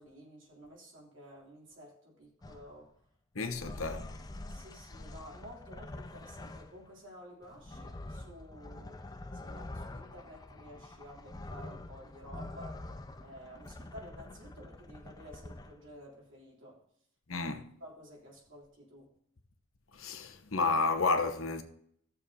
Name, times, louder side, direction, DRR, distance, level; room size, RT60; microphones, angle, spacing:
voice 1, 0.0-2.9 3.4-3.8 4.5-16.8 17.3-19.1, equal, 60° right, 3.2 m, -52 dB
sound 1, 2.4-2.8 3.4-6.9 7.4-15.9, left 2 dB, 15° left, 0.4 m, -46 dB
voice 2, 3.3-4.0 17.3-17.6 19.9-21.6, left 4 dB, 70° left, 1.0 m, -31 dB
16.5 x 6.9 x 2.8 m
head